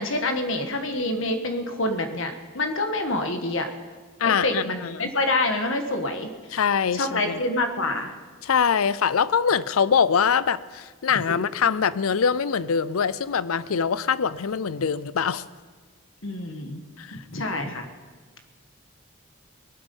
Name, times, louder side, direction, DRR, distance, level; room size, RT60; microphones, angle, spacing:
voice 1, 0.0-3.7 4.2-6.6 6.9-8.1 16.2-16.9 17.1-17.9, left 2 dB, 70° left, 6 dB, 1.5 m, -27 dB
voice 2, 4.2-5.1 6.5-7.3 8.4-15.4 17.0-17.2 17.7-17.8, left 6 dB, 85° left, 18 dB, 0.5 m, -23 dB
18.5 x 12.5 x 5.4 m, 1.5 s
head